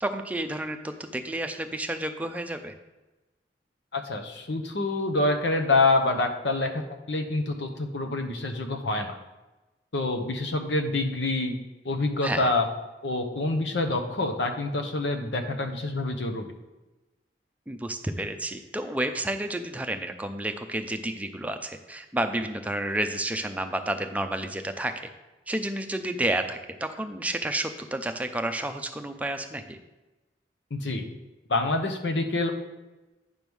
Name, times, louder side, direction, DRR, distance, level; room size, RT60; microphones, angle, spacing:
voice 1, 0.0-2.7 12.2-12.5 17.7-24.9 25.5-29.8, right 1 dB, 10° right, 6 dB, 0.5 m, -30 dB
voice 2, 3.9-6.8 7.1-9.2 9.9-11.5 11.8-12.7 13.0-16.5 30.7-31.0 31.5-32.5, left 2 dB, 85° left, 5 dB, 1.0 m, -26 dB
9.2 x 3.6 x 6.2 m, 1.1 s
head